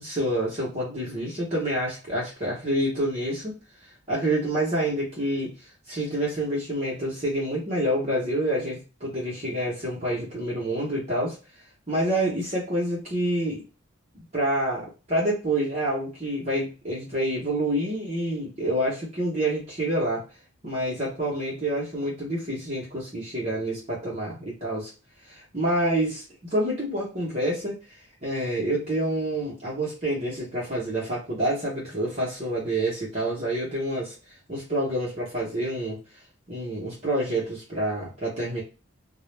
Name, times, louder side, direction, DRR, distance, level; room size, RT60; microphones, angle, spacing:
voice 1, 0.0-3.6 4.1-5.5 5.9-11.4 11.9-13.6 14.3-20.2 20.6-24.9 25.3-26.2 26.5-27.8 28.2-34.1 34.5-36.0 36.5-38.6, right 1 dB, 30° right, -5 dB, 0.8 m, -27 dB
2.3 x 2.0 x 3.1 m, 0.31 s
head